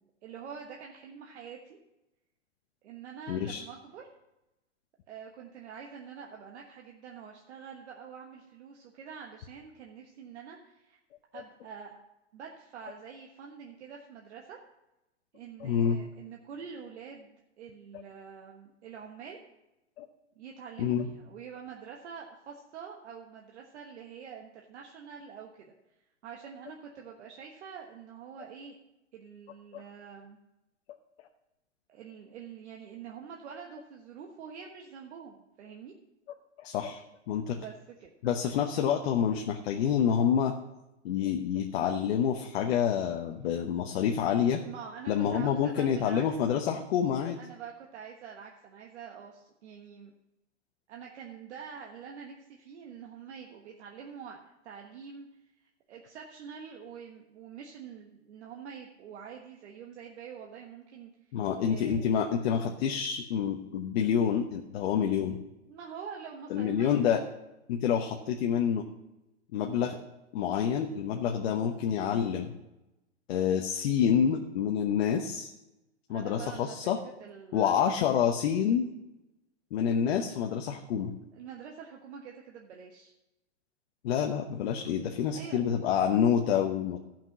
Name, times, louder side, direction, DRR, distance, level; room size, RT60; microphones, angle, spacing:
voice 1, 0.0-1.8 2.8-4.1 5.1-11.0 11.3-12.0 12.3-14.6 15.3-19.4 20.3-25.7 26.2-28.8 29.1-30.4 31.9-35.9 37.5-37.7 38.0-38.1 44.6-46.2 47.4-50.1 50.9-55.3 55.9-61.1 61.6-62.2 65.7-67.0 76.1-76.8 77.0-77.9 81.3-83.1 85.3-85.6, right 7 dB, 70° right, 0 dB, 1.3 m, -46 dB
voice 2, 3.3-3.6 15.6-16.0 20.0-20.1 20.8-21.1 29.7-29.8 36.6-37.6 38.2-40.5 41.0-44.6 45.1-47.4 61.3-65.4 66.5-67.2 67.7-68.9 69.5-70.0 70.3-72.5 73.3-75.5 76.1-77.0 77.5-78.9 79.7-81.1 84.0-87.0, left 8 dB, 60° left, 3 dB, 1.0 m, -28 dB
12.5 x 6.0 x 6.0 m, 0.96 s
hypercardioid pair, 135°, 35 cm